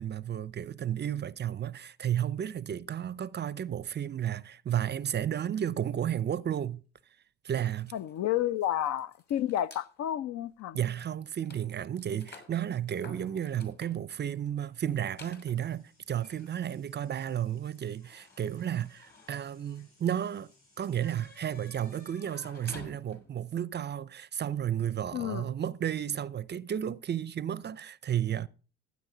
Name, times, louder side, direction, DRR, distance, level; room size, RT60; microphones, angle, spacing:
voice 1, 0.0-6.8 7.4-7.9 10.7-20.5 20.8-28.5, right 10 dB, 35° right, 0.5 m, -33 dB
sound 1, 5.8-6.6 7.6-8.0 10.4-10.6 12.9-13.0 13.2-13.3 14.5-22.1, left 1 dB, 90° left, 5.6 m, -68 dB
sound 2, 7.5-9.9 10.6-10.7 11.0-23.5, left 3 dB, 30° left, 2.9 m, -55 dB
voice 2, 7.9-10.8 25.1-25.5, left 12 dB, 60° left, 0.6 m, -31 dB
12.5 x 8.6 x 3.8 m
supercardioid pair, 70°, 31 cm